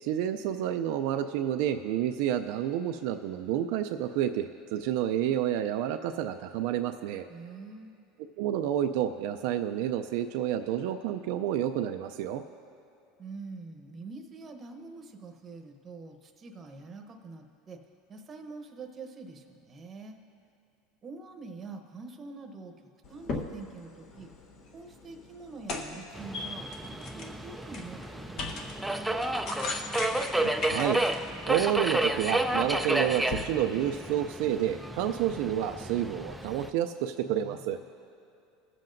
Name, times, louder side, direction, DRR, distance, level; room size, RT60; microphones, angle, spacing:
voice 1, 0.0-7.3 8.4-12.4 30.4-31.0 31.5-37.8, right 10 dB, 65° right, 5 dB, 0.4 m, -29 dB
voice 2, 7.3-8.0 13.2-17.8 18.1-20.2 21.0-22.7 23.1-24.3 24.7-29.1 37.2-37.9, right 3 dB, 25° right, 4 dB, 0.9 m, -45 dB
sound 1, 23.0-33.4, left 3 dB, 45° left, 1.0 m, -40 dB
Subway metro underground, 26.1-36.7, right 1 dB, 5° right, 0.4 m, -31 dB
22.0 x 7.5 x 2.6 m, 2.6 s
supercardioid pair, 145°, 0 cm